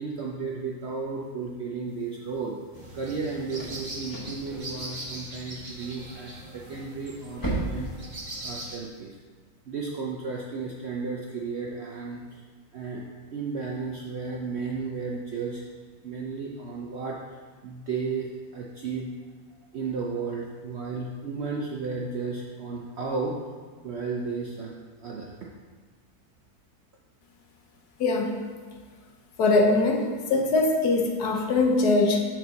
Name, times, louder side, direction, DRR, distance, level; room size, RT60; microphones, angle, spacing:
voice 1, 0.0-2.5 2.9-7.9 8.4-9.2 9.7-12.4 12.7-13.0 13.3-15.7 16.0-19.1 19.7-23.4 23.8-24.8 25.0-25.3, right 4 dB, 65° right, -2 dB, 0.6 m, -33 dB
sound 1, 1.9-9.0, right 2 dB, 15° left, 0.9 m, -39 dB
sound 2, 2.7-8.8, right 1 dB, 30° right, 1.1 m, -40 dB
voice 2, 29.4-30.0 30.3-32.2, left 3 dB, 75° left, 1 dB, 1.4 m, -21 dB
6.9 x 4.6 x 4.0 m, 1.5 s
omnidirectional pair, 1.7 m